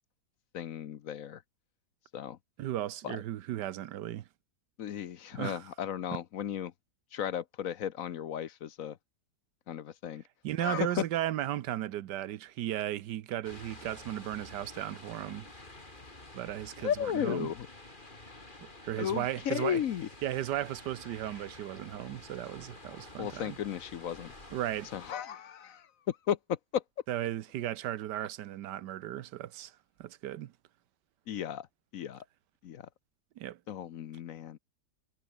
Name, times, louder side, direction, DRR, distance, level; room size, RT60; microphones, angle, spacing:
voice 1, 0.5-1.4 2.1-2.4 3.0-3.2 4.8-6.7 7.1-9.0 9.7-10.2 10.6-11.0 16.8-17.7 19.0-20.1 23.2-24.3 24.9-26.8 31.3-31.7 31.9-32.2 32.6-32.9 33.7-34.6, left 9 dB, 60° left, 1.1 m, -35 dB
voice 2, 2.6-4.2 5.3-5.6 10.4-15.5 16.3-17.5 18.6-19.8 20.2-23.5 24.5-24.9 27.1-29.7 30.0-30.5 33.4-33.6, right 12 dB, 90° right, 1.4 m, -35 dB
sound 1, 13.4-25.1, left 2 dB, 30° left, 3.7 m, -50 dB
omnidirectional pair, 1.8 m